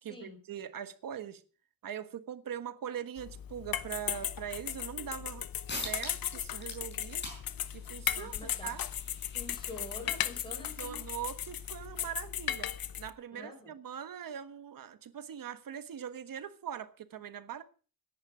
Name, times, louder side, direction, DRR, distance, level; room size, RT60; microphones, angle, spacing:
voice 1, 0.0-1.4 1.8-5.5 5.8-7.3 7.7-8.8 10.8-17.6, right 9 dB, 70° right, 1.4 m, -42 dB
beating eggs, 3.2-13.1, left 10 dB, 85° left, 0.9 m, -37 dB
sound 1, 5.7-6.3 6.6-11.7, left 2 dB, 30° left, 5.5 m, -46 dB
voice 2, 8.1-8.7 9.3-11.0 13.3-13.7, left 2 dB, 15° left, 4.6 m, -46 dB
17.0 x 11.0 x 5.0 m
wide cardioid pair, 165°, 34 cm